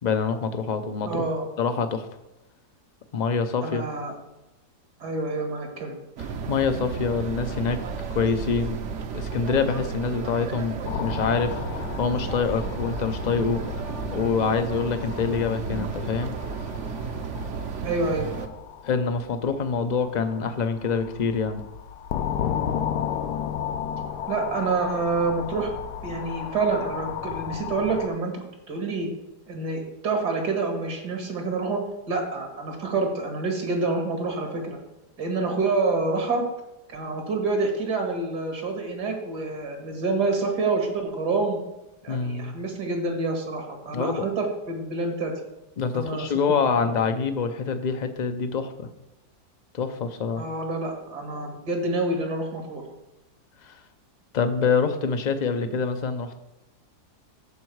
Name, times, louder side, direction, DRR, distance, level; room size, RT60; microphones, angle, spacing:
voice 1, 0.0-1.2 1.6-2.1 3.1-3.8 6.2-7.8 8.1-8.8 9.1-16.3 18.8-21.6 42.1-42.5 43.8-44.3 45.8-48.9 49.7-50.4 53.6-53.8 54.3-56.4, left 5 dB, 60° left, 9 dB, 0.4 m, -26 dB
voice 2, 1.0-1.5 3.6-4.1 5.0-6.0 17.8-18.3 24.3-25.7 26.0-28.3 28.7-29.1 29.5-31.8 32.1-34.8 35.2-36.4 36.9-41.6 42.0-45.3 45.9-46.3 46.8-46.9 50.4-52.8, right 3 dB, 80° right, 2 dB, 2.5 m, -27 dB
sound 1, 6.2-18.5, right 6 dB, 55° right, 0.9 m, -33 dB
sound 2, 10.8-28.1, left 9 dB, 75° left, 1.2 m, -34 dB
14.0 x 4.7 x 4.7 m, 0.96 s
omnidirectional pair, 1.7 m